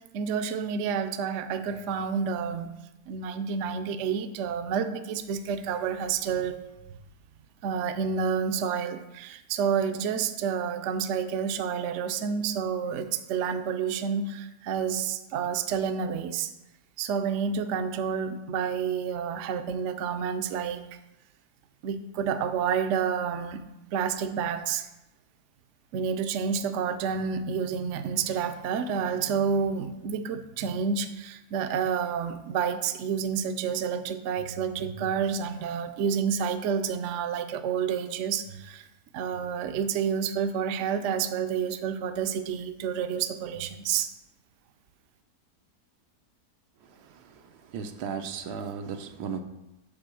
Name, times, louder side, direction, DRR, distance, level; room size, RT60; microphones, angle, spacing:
voice 1, 0.1-2.7 3.1-6.6 7.6-16.5 17.0-20.8 21.8-23.6 23.9-24.8 25.9-38.9 39.1-44.1, right 7 dB, 65° right, 8 dB, 0.7 m, -29 dB
voice 2, 47.7-49.4, right 6 dB, 90° right, 7 dB, 1.2 m, -34 dB
7.6 x 3.7 x 6.2 m, 0.95 s
omnidirectional pair, 1.7 m